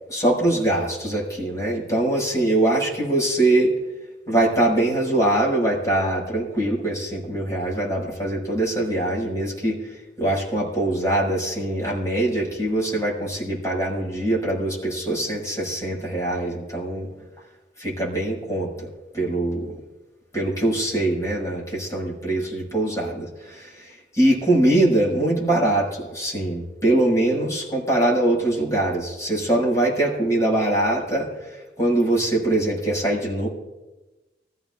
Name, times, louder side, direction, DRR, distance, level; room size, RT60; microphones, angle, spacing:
voice 1, 0.1-3.7 4.3-17.1 17.8-18.9 19.1-19.8 20.3-33.5, right 1 dB, 20° left, -4 dB, 5.8 m, -23 dB
25.0 x 15.0 x 2.4 m, 1.1 s
head